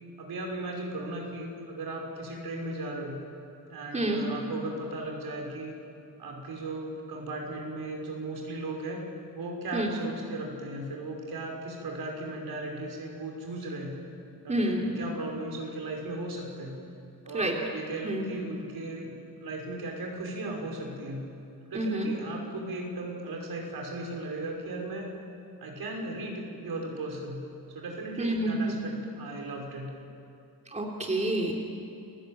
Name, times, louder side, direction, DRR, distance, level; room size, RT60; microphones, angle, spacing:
voice 1, 0.2-3.2 3.7-5.7 6.2-9.0 9.3-13.9 14.4-16.7 17.2-19.1 19.4-21.2 21.7-25.1 25.6-27.4 27.7-29.9, right 2 dB, 70° right, 0 dB, 5.8 m, -36 dB
voice 2, 3.9-4.3 9.7-9.9 14.5-14.9 17.3-17.5 18.0-18.2 21.7-22.1 28.2-28.9 30.7-31.5, right 1 dB, 20° right, 0 dB, 3.2 m, -28 dB
29.5 x 16.0 x 9.2 m, 2.6 s
cardioid pair, 100°, 37 cm